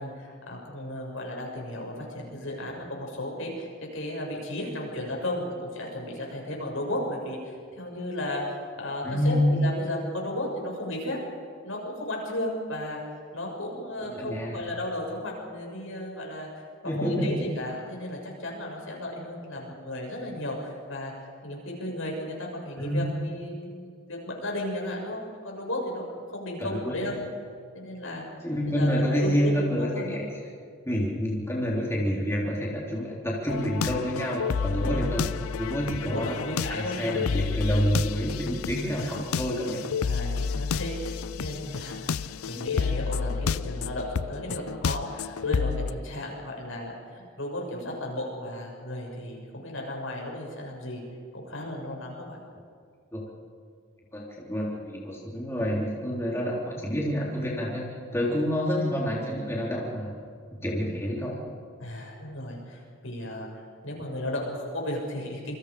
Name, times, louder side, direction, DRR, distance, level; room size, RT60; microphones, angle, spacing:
voice 1, 0.0-8.4 8.8-11.2 11.6-13.0 13.3-16.5 16.8-27.2 27.7-28.2 28.6-29.6 29.9-30.2 34.8-35.1 36.0-37.3 40.0-51.0 51.3-52.4 61.8-65.6, left 1 dB, 70° left, 0 dB, 6.9 m, -34 dB
voice 2, 9.0-9.6 14.1-14.7 16.9-17.3 22.8-23.1 26.6-27.1 28.4-30.2 30.8-35.2 35.6-36.4 36.7-39.9 42.5-42.8 53.1-53.2 54.1-57.9 58.1-60.1 60.6-61.4, equal, 10° left, -4 dB, 3.8 m, -28 dB
sound 1, 33.5-45.9, left 5 dB, 85° left, 0.5 m, -30 dB
28.0 x 24.0 x 5.1 m, 2.2 s
head